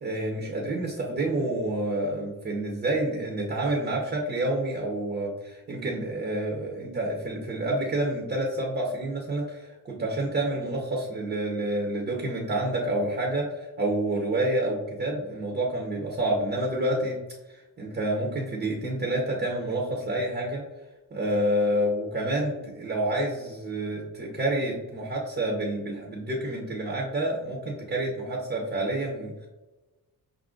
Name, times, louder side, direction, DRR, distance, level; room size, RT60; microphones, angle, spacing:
voice 1, 0.0-17.2 17.5-20.6 21.1-29.5, right 1 dB, 30° right, -1 dB, 0.7 m, -28 dB
5.4 x 2.5 x 3.7 m, 1.1 s
wide cardioid pair, 170°, 35 cm